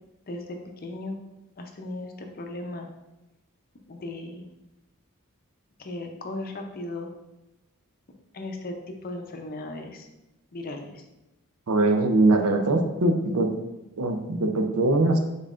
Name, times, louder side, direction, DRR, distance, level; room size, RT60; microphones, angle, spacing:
voice 1, 0.3-1.2 1.6-2.9 3.9-4.5 5.8-7.1 8.3-10.1 10.5-11.0, left 2 dB, 45° left, 4 dB, 0.6 m, -36 dB
voice 2, 11.7-13.5 14.0-15.2, right 2 dB, 85° right, 5 dB, 0.6 m, -22 dB
5.5 x 3.9 x 2.4 m, 0.97 s
head